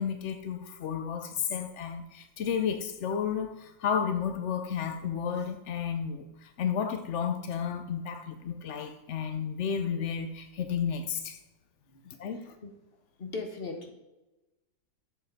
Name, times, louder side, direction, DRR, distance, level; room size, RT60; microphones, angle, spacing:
voice 1, 0.0-11.4 12.0-12.5, left 7 dB, 70° left, 8 dB, 0.7 m, -32 dB
voice 2, 12.4-12.7 13.2-13.9, left 3 dB, 30° left, 3 dB, 1.6 m, -39 dB
11.0 x 7.1 x 4.1 m, 1.0 s
omnidirectional pair, 2.1 m